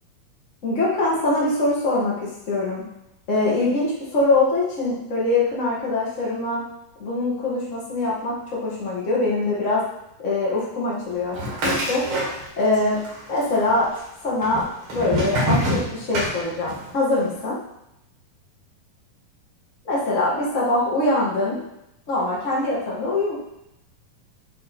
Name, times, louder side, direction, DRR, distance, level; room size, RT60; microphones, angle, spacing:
voice 1, 0.6-2.8 3.3-6.6 7.0-9.8 10.2-11.4 11.6-12.0 12.3-13.0 13.3-13.9 14.2-14.6 14.9-17.6 19.8-21.6 22.1-23.3, left 2 dB, 35° left, -6 dB, 1.2 m, -23 dB
sound 1, 11.3-12.8 13.0-13.8 14.4-16.9, equal, 50° right, 1.9 m, -25 dB
7.5 x 3.3 x 4.3 m, 0.84 s
omnidirectional pair, 4.2 m